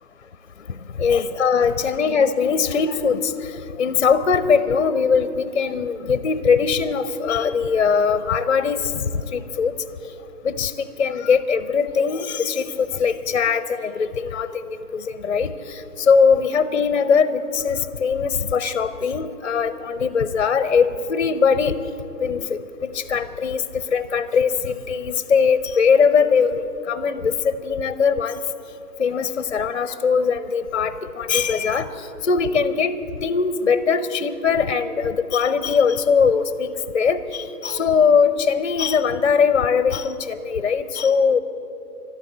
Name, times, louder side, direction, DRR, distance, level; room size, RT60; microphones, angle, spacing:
voice 1, 0.7-9.7 10.4-21.8 22.2-28.4 29.0-33.0 33.2-41.4, left 6 dB, 45° left, 14 dB, 0.6 m, -21 dB
13.0 x 12.5 x 7.8 m, 3.0 s
figure-of-eight pair, 145°, 48 cm